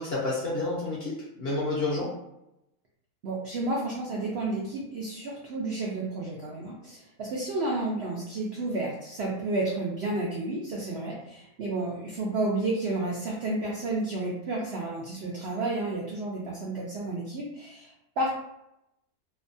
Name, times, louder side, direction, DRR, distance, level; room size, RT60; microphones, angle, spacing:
voice 1, 0.0-2.1, left 2 dB, 60° left, -5 dB, 0.7 m, -29 dB
voice 2, 3.2-18.3, right 2 dB, 75° right, -3 dB, 0.6 m, -31 dB
2.7 x 2.2 x 2.6 m, 0.85 s
omnidirectional pair, 1.6 m